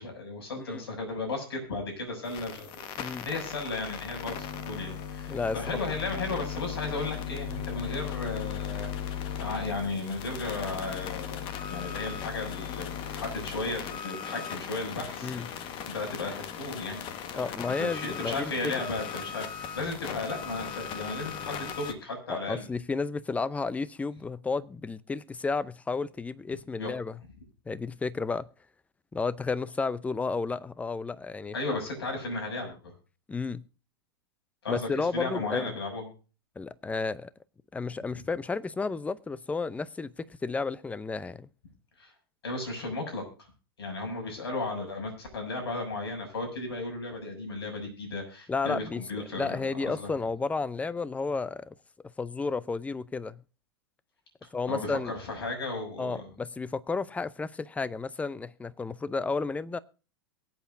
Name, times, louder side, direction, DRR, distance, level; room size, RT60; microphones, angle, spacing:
voice 1, 0.0-2.7 3.0-17.0 17.8-22.7 26.8-26.9 31.5-32.9 34.6-36.0 38.1-38.2 42.0-42.1 42.4-43.2 43.8-49.6 49.8-50.1 54.7-56.2, left 2 dB, 80° left, 6.7 m, -35 dB
sound 1, 2.2-21.9, left 8 dB, 40° left, 1.5 m, -37 dB
voice 2, 3.0-3.3 5.3-5.6 15.2-15.5 17.3-18.7 22.3-27.2 27.7-28.5 29.1-31.5 33.3-33.6 34.7-35.7 36.6-37.3 37.7-41.5 48.5-51.7 52.2-53.4 54.5-55.1 56.0-59.8, left 4 dB, 10° left, 0.6 m, -32 dB
23.0 x 8.4 x 2.6 m
hypercardioid pair, 105°, 13 cm